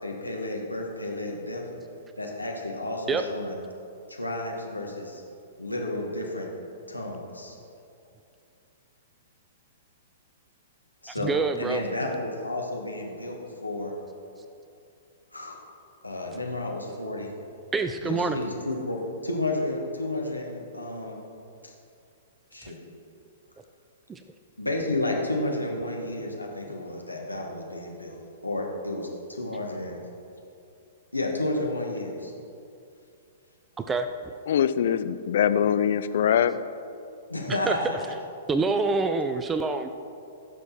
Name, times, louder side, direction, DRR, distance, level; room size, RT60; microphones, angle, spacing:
voice 1, 0.0-1.6 2.2-3.5 4.1-5.2 5.6-6.5 6.9-7.6 11.0-13.9 15.3-15.7 16.0-17.3 18.0-21.2 21.6-21.7 22.5-22.8 24.6-28.1 28.4-30.0 31.1-32.3 37.3-38.2, left 2 dB, 85° left, 1.7 m, -31 dB
voice 2, 11.1-11.8 17.7-18.4 24.1-24.2 33.8-34.3 37.5-37.8 38.5-39.9, right 4 dB, 15° right, 0.4 m, -26 dB
voice 3, 34.5-36.6, left 9 dB, 55° left, 0.5 m, -23 dB
16.5 x 6.5 x 4.5 m
figure-of-eight pair, 110°, 0 cm